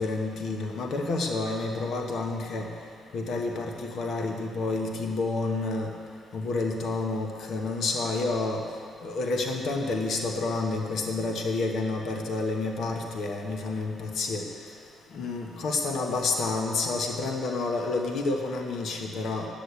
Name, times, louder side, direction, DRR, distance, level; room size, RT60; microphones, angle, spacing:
voice 1, 0.0-2.7 3.1-5.9 6.3-8.6 9.0-14.4 15.1-19.5, left 3 dB, 70° left, 2 dB, 1.2 m, -29 dB
9.9 x 8.5 x 8.3 m, 2.2 s
cardioid pair, 110°, 0 cm